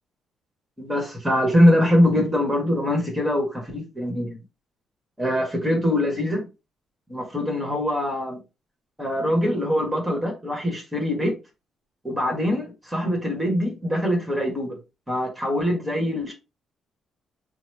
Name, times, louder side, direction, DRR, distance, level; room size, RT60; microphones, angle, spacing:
voice 1, 0.8-4.4 5.2-6.5 7.1-8.4 9.0-11.4 12.0-14.8 15.1-16.3, left 1 dB, 10° right, 1.2 m, -23 dB
3.0 x 2.0 x 3.1 m
cardioid pair, 90°, 0 cm